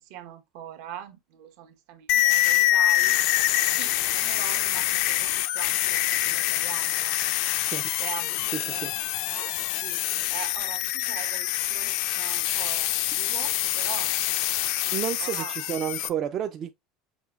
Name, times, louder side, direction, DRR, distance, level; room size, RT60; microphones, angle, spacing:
voice 1, 0.0-3.2 3.7-7.2 7.9-9.0 9.3-10.0 10.3-14.1 15.2-15.5, right 11 dB, 65° right, 0.9 m, -42 dB
sound 1, 2.1-16.1, left 15 dB, 60° left, 0.3 m, -25 dB
voice 2, 8.5-8.9 13.2-13.3 14.9-16.7, right 9 dB, 30° right, 0.3 m, -31 dB
6.3 x 3.0 x 2.4 m
cardioid pair, 165°, 0 cm